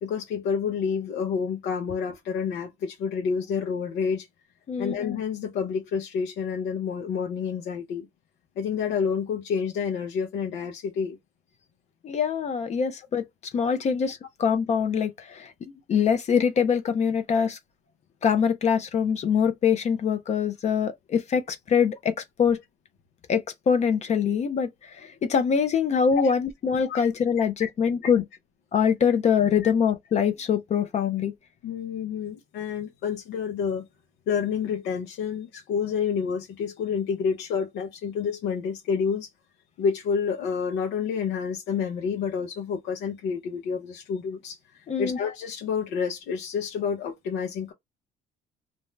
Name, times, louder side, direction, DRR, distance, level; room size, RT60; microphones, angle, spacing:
voice 1, 0.0-4.3 4.8-8.1 8.6-11.2 26.8-27.0 27.6-27.7 29.6-29.7 31.6-33.9 34.3-39.3 39.8-47.7, left 6 dB, 85° left, 0.8 m, -29 dB
voice 2, 12.0-13.3 13.5-15.5 15.9-17.6 18.2-22.6 23.3-28.2 28.7-31.3 44.9-45.2, left 7 dB, 40° left, 0.5 m, -24 dB
2.6 x 2.1 x 3.1 m
cardioid pair, 110°, 17 cm